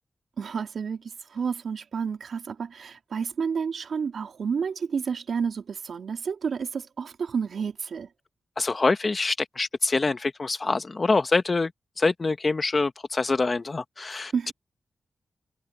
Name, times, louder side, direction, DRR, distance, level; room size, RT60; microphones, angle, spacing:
voice 1, 0.4-8.1 14.3-14.5, right 6 dB, 80° right, 3.4 m, -30 dB
voice 2, 8.6-11.7 12.0-14.5, left 3 dB, 45° left, 1.0 m, -25 dB
cardioid pair, 65°, 0 cm